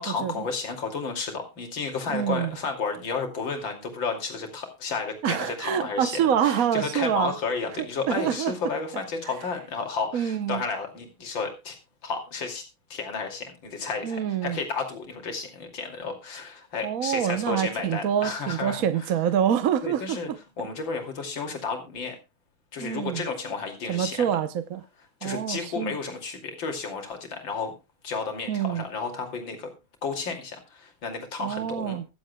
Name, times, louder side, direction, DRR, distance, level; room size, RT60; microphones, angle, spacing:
voice 1, 0.0-11.8 12.0-12.6 12.9-19.1 19.8-20.3 20.6-22.2 22.7-24.4 25.2-27.7 28.0-29.7 30.0-32.0, left 4 dB, 65° left, 3.3 m, -32 dB
voice 2, 2.1-2.5 5.2-7.3 8.1-8.5 10.1-10.6 14.0-14.6 16.8-20.4 22.8-23.3 23.9-24.8 25.2-25.9 28.5-28.8 31.4-32.0, right 9 dB, 55° right, 1.0 m, -26 dB
23.0 x 7.8 x 2.3 m
omnidirectional pair, 2.3 m